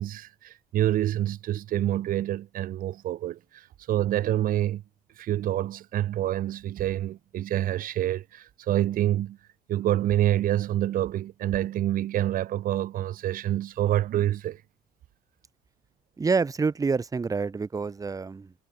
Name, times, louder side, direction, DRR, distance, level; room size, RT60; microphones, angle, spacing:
voice 1, 0.0-4.8 5.2-9.4 9.7-14.6, right 13 dB, 55° right, 0.7 m, -27 dB
voice 2, 16.2-18.5, right 4 dB, 20° right, 1.0 m, -27 dB
cardioid pair, 110°, 17 cm